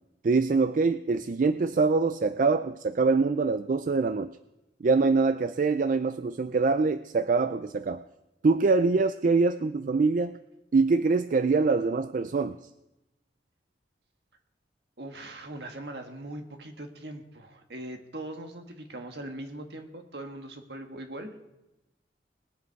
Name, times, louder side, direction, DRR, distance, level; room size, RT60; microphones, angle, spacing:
voice 1, 0.2-4.3 4.8-8.0 8.4-10.4 10.7-12.6, right 4 dB, 50° right, 11 dB, 0.4 m, -24 dB
voice 2, 15.0-21.3, right 1 dB, 70° right, 5 dB, 1.6 m, -40 dB
20.5 x 8.3 x 4.7 m, 0.97 s
head